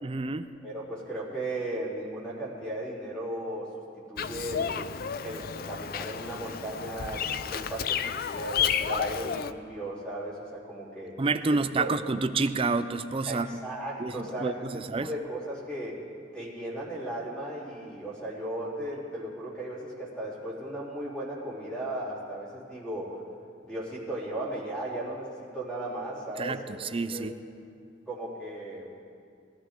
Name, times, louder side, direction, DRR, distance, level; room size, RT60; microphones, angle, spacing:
voice 1, 0.0-0.5 11.2-13.5 14.0-15.1 26.4-27.3, right 3 dB, 30° right, 11 dB, 0.5 m, -29 dB
voice 2, 0.6-4.9 5.2-11.1 11.8-11.9 13.3-14.6 15.0-16.0 16.3-23.2 23.6-26.8 27.1-27.3 28.1-28.9, right 1 dB, 5° left, -7 dB, 3.7 m, -36 dB
Bird vocalization bird call bird song, 4.2-9.5, left 8 dB, 50° left, 0.4 m, -31 dB
21.0 x 13.5 x 3.8 m, 2.3 s
head